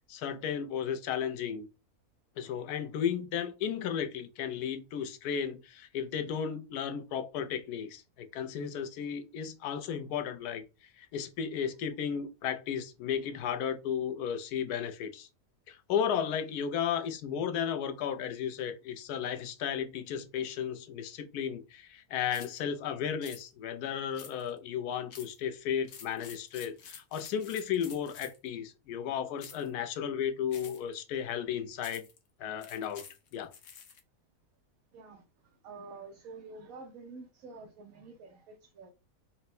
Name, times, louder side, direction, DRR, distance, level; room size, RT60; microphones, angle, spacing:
voice 1, 0.1-1.7 2.4-10.6 11.0-15.3 15.7-32.0 32.4-33.0 33.3-33.5, left 8 dB, 80° left, 1.1 m, -34 dB
sound 1, 22.3-22.6 23.2-23.4 24.1-24.6 25.1-25.4 25.8-28.5 29.4-29.7 30.5-30.9 31.8-32.2 32.6-34.0, left 7 dB, 60° left, 1.0 m, -49 dB
voice 2, 34.9-35.2 35.6-38.9, right 4 dB, 65° right, 1.0 m, -48 dB
4.2 x 2.1 x 4.1 m
omnidirectional pair, 1.6 m